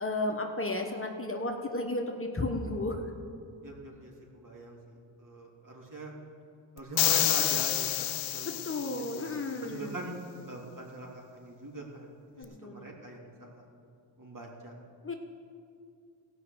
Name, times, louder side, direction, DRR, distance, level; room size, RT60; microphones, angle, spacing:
voice 1, 0.0-3.0 8.4-9.9 12.4-13.1 15.0-15.1, left 2 dB, 30° left, 3 dB, 1.3 m, -33 dB
voice 2, 3.6-6.1 6.7-8.0 8.3-8.6 9.1-9.3 9.6-10.2 10.5-13.6 14.2-14.7, right 1 dB, 40° right, -1 dB, 3.1 m, -42 dB
sound 1, 7.0-9.3, left 14 dB, 85° left, 0.6 m, -28 dB
16.0 x 5.9 x 8.0 m, 2.4 s
cardioid pair, 55°, 47 cm